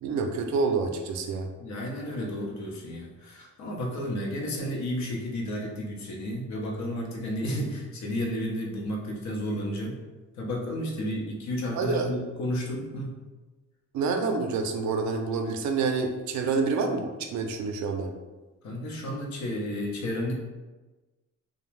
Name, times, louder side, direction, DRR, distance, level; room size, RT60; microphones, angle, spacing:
voice 1, 0.0-1.5 11.8-12.1 13.9-18.1, right 4 dB, 70° right, 5 dB, 0.5 m, -27 dB
voice 2, 1.6-10.0 10.4-13.2 18.6-20.3, equal, 65° left, 0 dB, 0.7 m, -32 dB
2.5 x 2.1 x 3.1 m, 1.2 s
cardioid pair, 90°, 30 cm